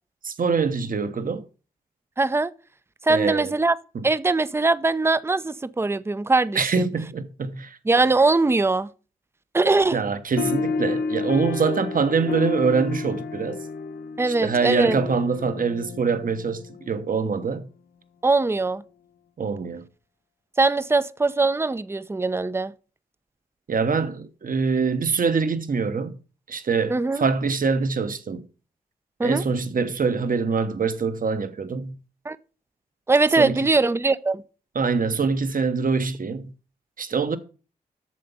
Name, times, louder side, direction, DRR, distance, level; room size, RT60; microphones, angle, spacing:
voice 1, 0.2-1.4 3.1-3.5 3.9-4.0 6.5-7.8 9.9-13.6 14.3-17.7 19.4-19.8 23.7-26.2 26.5-28.4 29.2-31.9 33.4-33.7 34.7-36.5 37.0-37.4, right 5 dB, 55° right, 1.0 m, -24 dB
voice 2, 2.2-2.5 3.0-3.7 4.0-6.9 7.9-8.9 9.5-10.0 14.2-15.0 18.2-18.8 20.6-22.7 26.9-27.2 29.2-29.4 32.2-32.4 33.1-34.4, right 3 dB, 15° right, 0.5 m, -21 dB
sound 1, 10.4-17.2, left 4 dB, 70° left, 0.7 m, -31 dB
7.5 x 6.8 x 5.5 m
supercardioid pair, 45°, 17 cm